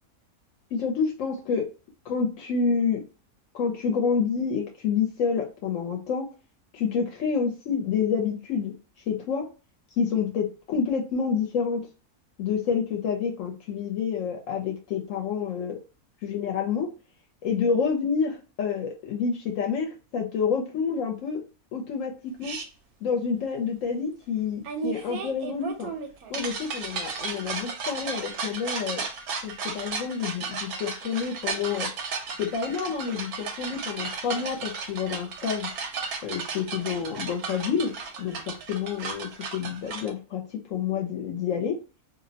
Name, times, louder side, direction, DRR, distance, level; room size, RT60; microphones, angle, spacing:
voice 1, 0.7-1.7 2.1-3.0 3.5-6.3 6.7-8.7 9.1-9.5 10.0-11.9 12.4-15.8 16.2-16.9 17.4-21.4 21.7-22.6 23.0-25.9 26.3-29.0 29.4-31.9 32.4-35.7 36.2-37.9 38.2-41.8, left 6 dB, 70° left, 2 dB, 0.9 m, -28 dB
sound 1, 22.4-22.7 24.6-40.1, right 5 dB, 90° right, 1.1 m, -34 dB
2.5 x 2.0 x 2.6 m, 0.34 s
omnidirectional pair, 1.5 m